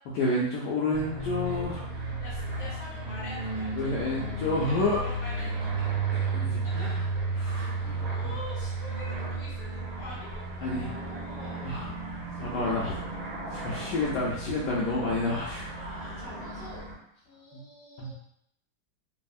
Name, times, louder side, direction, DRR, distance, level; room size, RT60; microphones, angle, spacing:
voice 1, 0.1-1.8 3.7-5.0 6.3-7.1 7.4-8.4 10.6-10.9 11.6-13.0 13.5-16.2 17.5-17.6 18.0-18.1, left 2 dB, 75° left, -5 dB, 1.1 m, -30 dB
sound 1, 0.9-16.9, right 3 dB, 70° right, 1.5 m, -34 dB
voice 2, 1.4-1.8 2.2-3.9 4.5-5.9 6.8-7.0 7.5-7.7 8.1-11.7 12.3-12.4 12.8-13.2 16.0-16.8 17.2-18.1, left 1 dB, 50° left, -6 dB, 1.3 m, -45 dB
3.4 x 2.0 x 2.3 m, 0.74 s
omnidirectional pair, 1.9 m